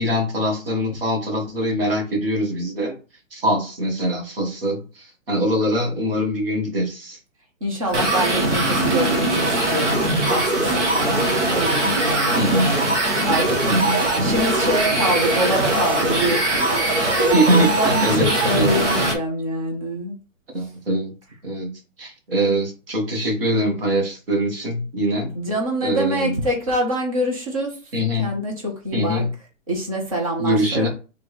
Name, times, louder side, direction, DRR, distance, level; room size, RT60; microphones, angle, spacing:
voice 1, 0.0-2.9 3.3-7.2 12.3-12.7 13.7-14.0 17.3-17.7 18.0-18.3 18.5-19.1 20.5-21.1 21.4-21.7 22.0-25.3 25.8-26.4 27.9-28.3 28.9-29.3 30.4-30.9, equal, 45° right, 2 dB, 1.6 m, -23 dB
voice 2, 7.6-12.9 13.2-13.7 14.2-16.7 17.2-20.1 25.3-27.8 28.2-29.2 29.7-30.9, right 1 dB, 25° right, 0 dB, 1.0 m, -25 dB
sound 1, 7.9-19.1, right 1 dB, 60° right, 1.5 m, -21 dB
4.5 x 3.6 x 3.2 m, 0.33 s
hypercardioid pair, 175°, 40 cm